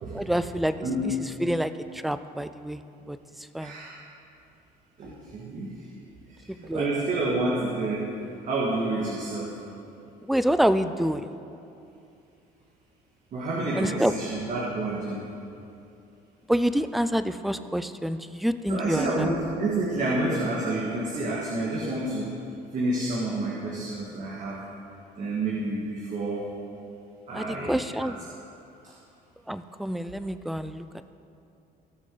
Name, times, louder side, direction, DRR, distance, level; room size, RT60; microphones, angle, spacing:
voice 1, 0.1-0.9 1.4-2.8 3.1-3.8 6.5-6.9 10.2-11.3 13.8-14.1 16.5-19.3 27.3-28.3 29.5-31.0, equal, ahead, 12 dB, 0.3 m, -27 dB
voice 2, 0.8-1.2 3.6-4.0 5.0-5.7 6.3-8.2 8.4-9.6 13.3-15.2 18.7-22.4 22.7-24.6 25.2-26.5 27.3-28.1 28.8-28.9, right 2 dB, 50° right, -5 dB, 1.7 m, -29 dB
17.5 x 6.3 x 3.9 m, 2.6 s
cardioid pair, 110°, 17 cm